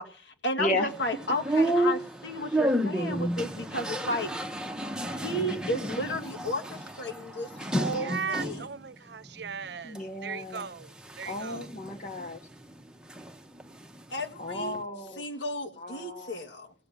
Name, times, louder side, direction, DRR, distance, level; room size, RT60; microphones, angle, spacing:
voice 1, 0.0-4.3 5.1-8.7 14.1-14.7 15.2-16.7, left 1 dB, 80° left, 1.9 m, -33 dB
voice 2, 0.6-0.9 9.8-10.7 11.3-12.4 14.4-15.2 15.8-16.4, left 2 dB, 45° left, 1.7 m, -33 dB
sound 1, 0.9-8.7 9.2-10.0 10.5-13.3 13.6-14.8, right 1 dB, 5° right, 1.0 m, -31 dB
voice 3, 8.0-11.7, right 6 dB, 65° right, 0.7 m, -38 dB
17.0 x 6.9 x 8.0 m
head